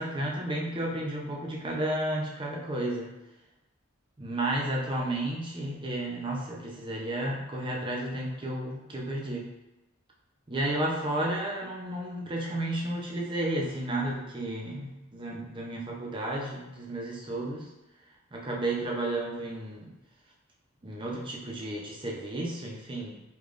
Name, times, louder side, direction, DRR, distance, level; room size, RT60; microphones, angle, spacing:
voice 1, 0.0-3.1 4.2-9.5 10.5-17.7 18.3-20.0 20.8-23.2, right 1 dB, 20° right, -2 dB, 0.5 m, -32 dB
4.9 x 2.3 x 2.5 m, 1.0 s
head